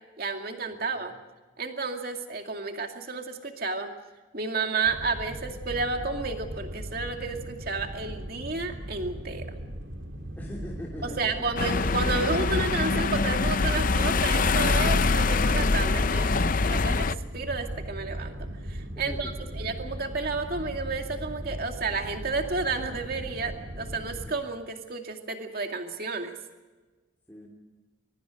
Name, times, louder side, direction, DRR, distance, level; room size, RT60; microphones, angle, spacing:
voice 1, 0.2-1.1 1.6-3.9 4.3-9.5 11.0-17.1 17.3-18.3 18.7-26.3, right 4 dB, 50° right, 4 dB, 2.4 m, -31 dB
voice 2, 0.8-1.2 10.4-11.8 18.9-19.7 27.3-27.5, equal, 10° left, -4 dB, 3.3 m, -42 dB
sound 1, 4.8-24.3, equal, 65° right, 3.3 m, -38 dB
sound 2, 11.6-17.1, left 4 dB, 45° left, 0.6 m, -24 dB
24.0 x 23.0 x 5.1 m, 1.2 s
head